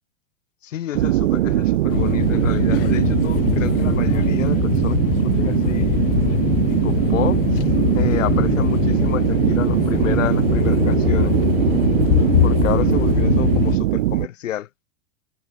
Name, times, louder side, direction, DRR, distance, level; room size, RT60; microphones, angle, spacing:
voice 1, 0.6-5.0 5.2-6.0 6.7-7.4 7.9-11.3 12.4-14.7, left 12 dB, 90° left, 2.4 m, -29 dB
sound 1, 0.9-14.3, right 15 dB, 55° right, 0.5 m, -20 dB
sound 2, 1.9-13.8, left 15 dB, 50° left, 0.6 m, -22 dB
supercardioid pair, 175°, 37 cm